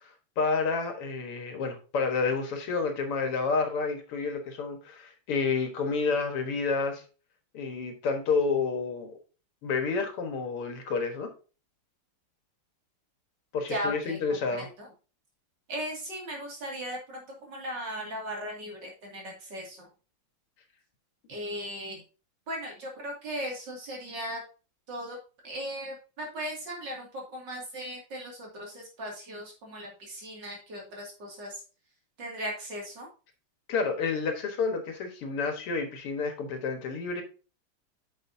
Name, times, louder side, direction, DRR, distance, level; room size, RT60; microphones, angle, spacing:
voice 1, 0.0-7.0 7.5-9.2 9.6-11.3 13.5-14.7 33.7-37.2, left 4 dB, 85° left, 5 dB, 2.4 m, -29 dB
voice 2, 13.7-14.2 14.5-14.9 15.7-19.9 21.3-22.0 22.5-24.4 24.9-25.2 25.4-31.6 32.2-33.1, equal, 55° right, -1 dB, 3.0 m, -37 dB
9.5 x 6.6 x 2.7 m, 0.35 s
omnidirectional pair, 2.4 m